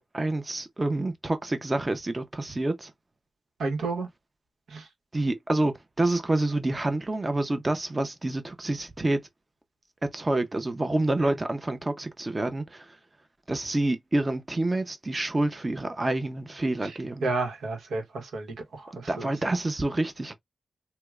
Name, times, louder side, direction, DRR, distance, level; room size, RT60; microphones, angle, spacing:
voice 1, 0.1-2.9 5.1-9.2 10.0-12.9 13.5-17.3 19.1-20.4, right 2 dB, 30° right, 0.7 m, -28 dB
voice 2, 3.6-4.1 4.7-4.8 11.2-11.3 16.8-16.9 17.2-19.3, right 3 dB, 85° right, 1.0 m, -31 dB
4.4 x 2.1 x 2.4 m
cardioid pair, 70°, 0 cm